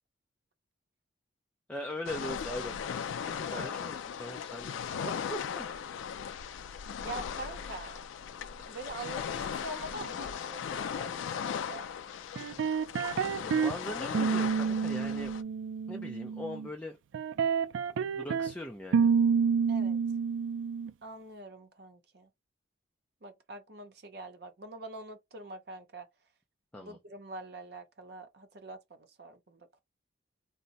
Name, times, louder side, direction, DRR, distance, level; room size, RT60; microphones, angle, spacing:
voice 1, 1.7-2.7 3.2-5.7 8.6-8.8 13.4-15.3 15.9-17.0 18.1-19.1 26.7-27.0, left 1 dB, 5° left, 0.4 m, -40 dB
sound 1, 2.1-15.4, left 7 dB, 80° left, 0.3 m, -38 dB
voice 2, 3.5-3.9 7.0-8.0 8.6-11.9 19.7-20.0 21.0-22.3 23.2-26.1 26.7-29.8, right 2 dB, 55° right, 0.7 m, -45 dB
sound 2, 12.4-13.8 14.1-16.7 17.1-18.5 18.9-20.9, right 6 dB, 80° right, 0.3 m, -29 dB
2.6 x 2.1 x 3.9 m
head